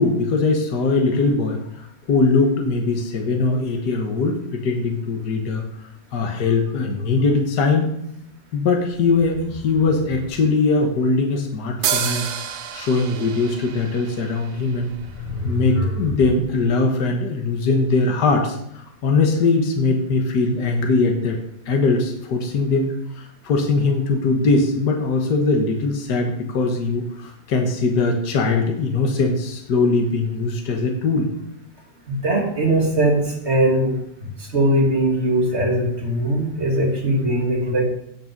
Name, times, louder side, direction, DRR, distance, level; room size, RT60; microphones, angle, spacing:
voice 1, 0.0-5.6 6.1-7.9 8.5-14.9 15.4-21.4 21.7-31.3, left 3 dB, 65° left, 2 dB, 2.0 m, -21 dB
sound 1, 8.9-10.6 13.7-13.8 14.7-16.6, left 1 dB, 35° left, 1.7 m, -30 dB
sound 2, 11.8-15.4, right 8 dB, 75° right, 1.6 m, -29 dB
voice 2, 32.1-33.9 34.4-37.8, right 1 dB, 35° right, -1 dB, 3.0 m, -20 dB
17.0 x 6.0 x 5.2 m, 0.76 s
omnidirectional pair, 1.9 m